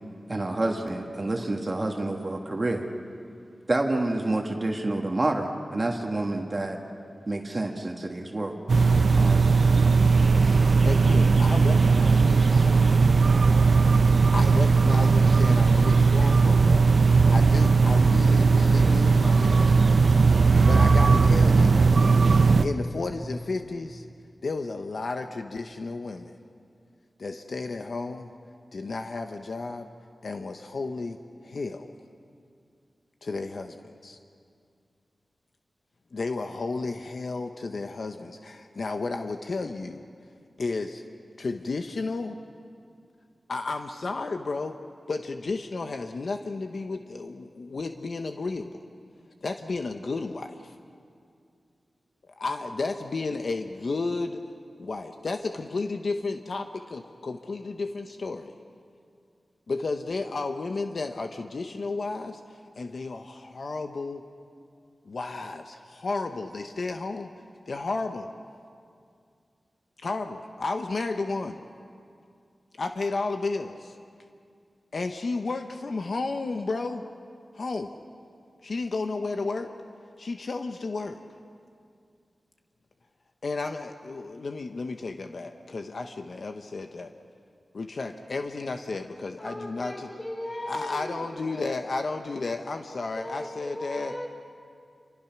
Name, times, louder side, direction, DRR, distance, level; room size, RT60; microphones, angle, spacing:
voice 1, 0.3-2.8 3.7-6.8 7.3-8.6 9.2-9.8, right 2 dB, 35° right, 2 dB, 1.7 m, -28 dB
sound 1, 8.7-22.6, right 4 dB, 60° right, 0.7 m, -18 dB
voice 2, 10.8-12.9 14.3-16.9 17.3-19.8 20.7-21.8 22.6-24.0 24.4-26.3 27.2-28.3 28.7-29.9 30.2-31.2 31.4-31.9 33.2-34.2 36.1-40.0 40.6-41.0 41.4-42.4 43.5-44.8 45.1-48.8 49.4-50.8 52.4-54.4 54.8-58.5 59.7-62.4 62.8-64.2 65.0-67.3 67.7-68.3 70.0-71.6 72.8-74.0 74.9-77.0 77.5-77.9 78.6-79.7 80.2-81.2 83.4-87.1 87.7-90.1 90.7-94.2, left 3 dB, 60° left, 6 dB, 0.9 m, -32 dB
voice 3, 89.4-91.8 93.2-94.3, left 1 dB, 25° left, -1 dB, 5.4 m, -37 dB
28.0 x 24.5 x 6.0 m, 2.3 s
wide cardioid pair, 105°, 0 cm